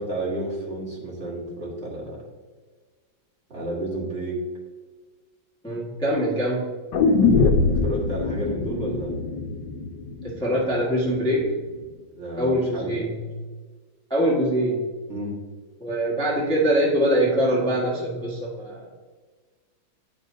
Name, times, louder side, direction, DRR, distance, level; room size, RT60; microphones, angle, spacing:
voice 1, 0.0-2.2 3.5-4.4 7.0-7.6 7.8-9.2 12.1-13.0 15.1-15.3, right 1 dB, 35° right, -7 dB, 1.9 m, -31 dB
voice 2, 5.6-6.6 10.2-11.5 12.4-13.2 14.1-14.8 15.8-18.9, equal, 5° left, -6 dB, 1.3 m, -23 dB
sound 1, 6.9-11.0 11.3-11.4, left 4 dB, 70° left, 1.3 m, -23 dB
10.0 x 5.2 x 2.7 m, 1.4 s
omnidirectional pair, 2.2 m